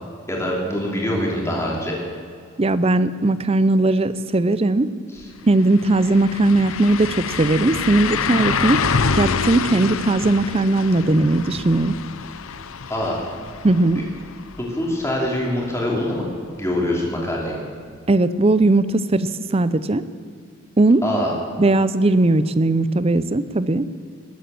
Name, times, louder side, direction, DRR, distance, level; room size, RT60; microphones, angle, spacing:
voice 1, 0.3-2.0 5.1-5.3 12.9-13.2 13.9-14.0 14.6-16.2 16.6-17.6 21.0-21.3, left 1 dB, 10° left, -2 dB, 3.0 m, -24 dB
voice 2, 2.6-4.9 5.5-8.8 9.1-11.9 13.6-14.0 18.1-20.0 20.8-21.0 21.6-23.8, right 2 dB, 25° right, 14 dB, 0.5 m, -18 dB
sound 1, 5.2-5.3 5.6-15.4 15.8-15.9 18.6-18.7, left 5 dB, 70° left, 0.7 m, -27 dB
19.5 x 8.6 x 7.7 m, 2.2 s
head